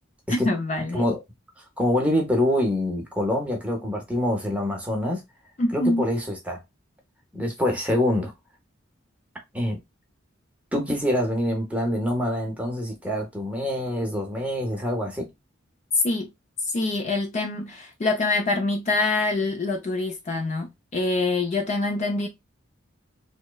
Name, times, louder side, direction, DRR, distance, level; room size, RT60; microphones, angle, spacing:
voice 1, 0.3-1.0 5.6-6.0 16.0-16.3 16.7-22.3, left 2 dB, 35° left, 0.4 m, -25 dB
voice 2, 1.8-5.2 5.7-6.6 7.3-8.3 9.5-9.8 10.7-15.3, left 1 dB, 5° right, 0.7 m, -25 dB
3.0 x 2.0 x 2.2 m
head